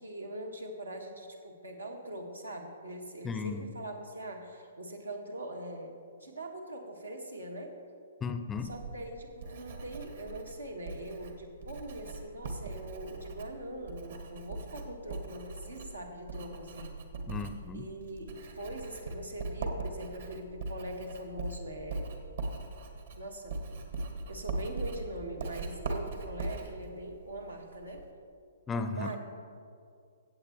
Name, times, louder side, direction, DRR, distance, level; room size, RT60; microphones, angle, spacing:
voice 1, 0.0-5.9 6.2-7.7 8.6-16.9 17.7-22.1 23.1-23.6 24.3-28.0 28.9-29.2, right 1 dB, 85° right, 1 dB, 1.5 m, -42 dB
voice 2, 3.2-3.7 8.2-8.7 17.3-17.9 28.7-29.2, left 4 dB, 15° left, 9 dB, 0.5 m, -35 dB
Writing, 8.6-28.1, right 3 dB, 60° right, 1.3 m, -41 dB
16.5 x 7.9 x 3.0 m, 2.3 s
figure-of-eight pair, 120°, 0 cm